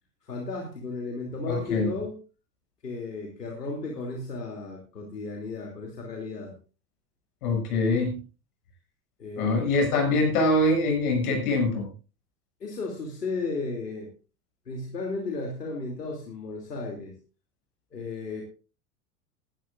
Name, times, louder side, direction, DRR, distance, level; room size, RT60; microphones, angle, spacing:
voice 1, 0.2-2.2 2.8-6.5 9.2-9.7 12.6-14.1 14.6-17.2 17.9-18.4, left 3 dB, 85° left, 1 dB, 3.1 m, -34 dB
voice 2, 1.5-1.9 7.4-8.1 9.4-11.9, left 2 dB, 65° left, 3 dB, 7.2 m, -24 dB
20.0 x 12.5 x 2.6 m, 0.34 s
figure-of-eight pair, 85°, 47 cm